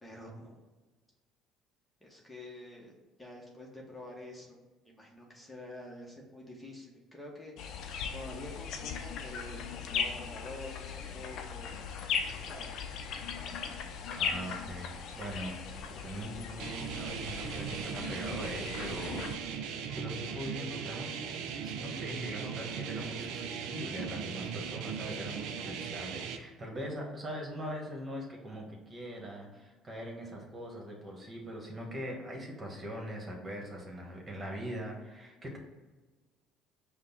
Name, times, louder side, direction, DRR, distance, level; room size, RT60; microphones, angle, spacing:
voice 1, 0.0-0.6 2.0-2.9 3.2-7.6 8.1-11.7 12.3-12.8, left 1 dB, 15° left, -2 dB, 1.0 m, -47 dB
sound 1, 7.6-19.4, left 6 dB, 65° left, 0.5 m, -38 dB
voice 2, 13.4-13.9 14.2-19.2 19.9-21.2 21.6-35.6, equal, 35° right, -1 dB, 1.4 m, -41 dB
sound 2, 16.6-26.4, right 7 dB, 75° right, 0.4 m, -38 dB
5.1 x 2.2 x 4.1 m, 1.3 s
hypercardioid pair, 70°, 0 cm